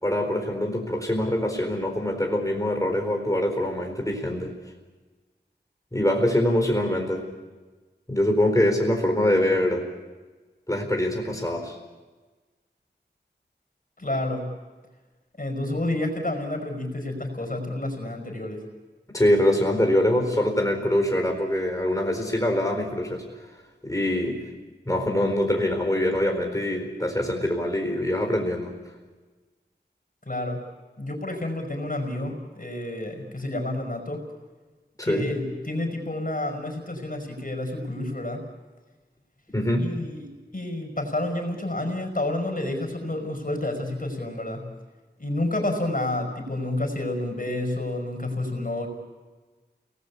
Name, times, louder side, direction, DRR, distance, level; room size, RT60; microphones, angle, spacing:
voice 1, 0.0-4.5 5.9-7.3 8.1-9.8 10.7-11.8 19.1-23.3 23.8-24.4 24.9-28.7 35.0-35.3 39.5-39.9, left 1 dB, 20° left, 1 dB, 4.4 m, -24 dB
voice 2, 14.0-14.5 15.4-18.6 30.3-30.6 31.0-34.2 35.0-38.4 39.8-40.3 40.5-44.7 45.2-48.9, left 1 dB, 50° left, 3 dB, 5.5 m, -29 dB
29.0 x 20.0 x 8.5 m, 1.3 s
wide cardioid pair, 50°, 18 cm